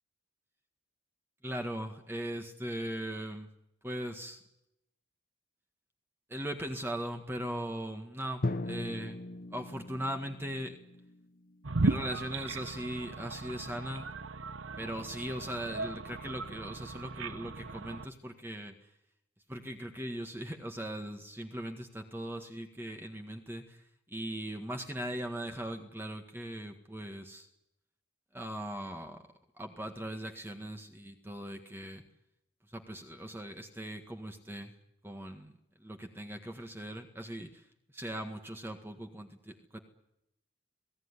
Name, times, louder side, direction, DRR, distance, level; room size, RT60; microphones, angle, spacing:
voice 1, 1.4-3.5 3.8-4.4 6.3-9.2 9.5-10.8 11.8-14.1 14.8-18.9 19.5-27.5 28.3-29.2 29.6-32.0 32.7-34.7 35.0-39.8, equal, 10° right, 4 dB, 1.7 m, -39 dB
Drum, 8.4-12.2, left 2 dB, 45° left, 0.9 m, -39 dB
sound 1, 11.6-18.1, right 3 dB, 85° right, 1.0 m, -36 dB
27.0 x 18.5 x 9.9 m, 0.84 s
head